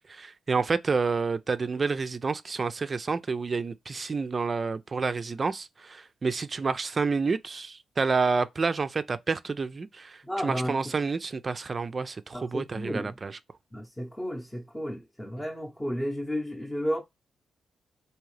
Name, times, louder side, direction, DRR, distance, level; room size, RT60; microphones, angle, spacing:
voice 1, 0.1-13.4, right 4 dB, 40° right, 0.4 m, -29 dB
voice 2, 10.2-10.8 12.3-13.2 13.7-17.0, equal, 10° left, 0.7 m, -33 dB
3.7 x 2.8 x 3.2 m
cardioid pair, 80°, 0 cm